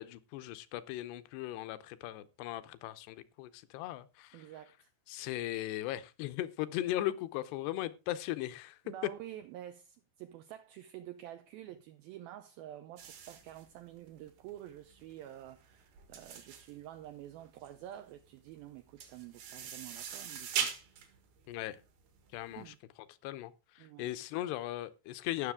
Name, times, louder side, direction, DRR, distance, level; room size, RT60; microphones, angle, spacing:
voice 1, 0.0-4.4 5.1-8.8 21.5-21.8 22.3-22.6 23.2-25.5, left 14 dB, 80° left, 2.7 m, -38 dB
voice 2, 4.3-4.9 8.9-21.2 22.6-22.8 23.8-24.1, right 12 dB, 80° right, 2.2 m, -49 dB
sound 1, 13.0-22.6, right 7 dB, 65° right, 3.7 m, -42 dB
17.0 x 6.5 x 3.6 m
omnidirectional pair, 5.0 m